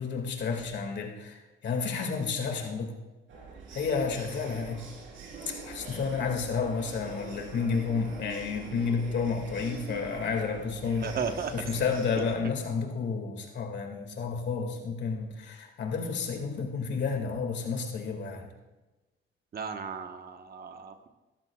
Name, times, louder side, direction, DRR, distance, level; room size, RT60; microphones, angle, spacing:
voice 1, 0.0-2.9 3.7-4.9 5.5-11.1 11.5-18.5, left 5 dB, 65° left, 3 dB, 2.2 m, -31 dB
sound 1, 3.3-12.4, right 4 dB, 85° right, 3.5 m, -44 dB
voice 2, 11.0-11.5 12.2-12.3 19.5-21.1, right 6 dB, 50° right, 6 dB, 1.3 m, -35 dB
17.5 x 13.5 x 2.4 m, 1.1 s
cardioid pair, 90°, 20 cm